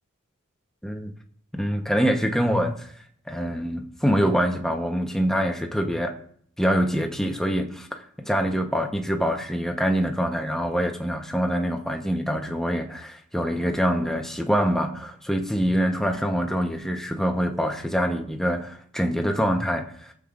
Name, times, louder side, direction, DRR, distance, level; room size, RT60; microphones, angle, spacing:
voice 1, 0.8-1.1 1.5-2.9 3.3-6.2 6.6-20.1, equal, ahead, 1.0 m, -25 dB
22.5 x 7.7 x 2.6 m
head